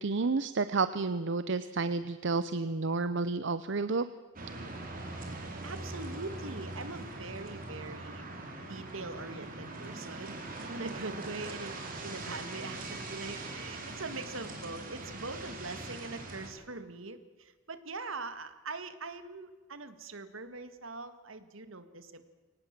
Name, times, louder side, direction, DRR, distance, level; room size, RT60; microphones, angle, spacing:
voice 1, 0.0-4.1, right 3 dB, 65° right, 13 dB, 0.7 m, -30 dB
sound 1, 4.4-16.5, right 2 dB, 45° right, 4.1 m, -42 dB
voice 2, 5.6-8.2 8.7-10.4 10.7-22.3, right 3 dB, 80° right, 11 dB, 1.8 m, -42 dB
23.5 x 19.0 x 7.5 m, 1.3 s
head